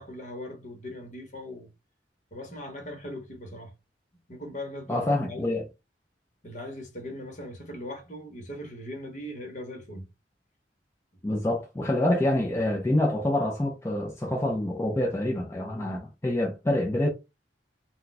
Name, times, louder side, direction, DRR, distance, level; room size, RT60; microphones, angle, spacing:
voice 1, 0.0-1.7 2.3-3.7 4.3-5.5 6.4-10.1, left 1 dB, 45° left, 1.1 m, -39 dB
voice 2, 4.9-5.6 11.2-17.1, left 1 dB, 15° left, 0.4 m, -26 dB
2.3 x 2.3 x 3.9 m
head